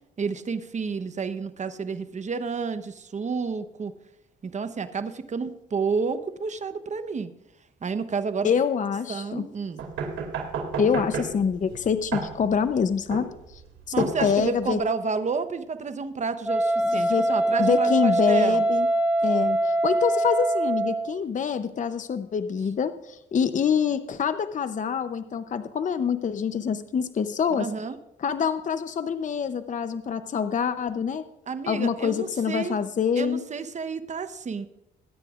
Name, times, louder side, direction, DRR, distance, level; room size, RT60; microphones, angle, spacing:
voice 1, 0.2-3.9 4.4-7.3 7.8-8.5 9.1-9.8 13.9-18.6 27.5-28.0 31.5-32.8 33.2-34.7, right 5 dB, 35° right, 10 dB, 1.0 m, -30 dB
voice 2, 8.4-9.5 10.8-13.6 14.0-14.8 16.9-17.3 17.6-18.9 19.2-27.7 28.2-31.2 31.7-33.4, left 6 dB, 40° left, 10 dB, 0.7 m, -26 dB
sound 1, 9.8-14.8, right 5 dB, 85° right, 2.8 m, -33 dB
Wind instrument woodwind instrument, 16.4-21.1, right 1 dB, 5° right, 0.9 m, -23 dB
21.0 x 9.8 x 2.5 m, 0.89 s
cardioid pair, 90°, 20 cm